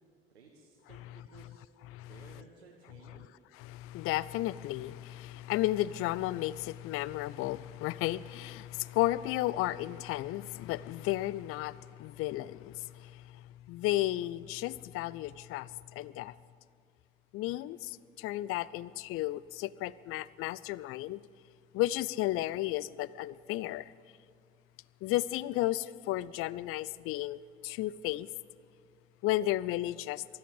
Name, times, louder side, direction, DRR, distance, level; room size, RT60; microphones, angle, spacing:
voice 1, 0.3-1.6 2.1-3.3, right 4 dB, 85° right, 0 dB, 1.2 m, -56 dB
voice 2, 1.9-2.4 3.1-3.2 3.5-16.3 17.3-21.2 21.7-23.9 25.0-27.4 27.6-28.3 29.2-30.2, left 16 dB, 45° left, 20 dB, 0.4 m, -33 dB
15.0 x 12.5 x 7.3 m, 2.1 s
figure-of-eight pair, 50°, 30 cm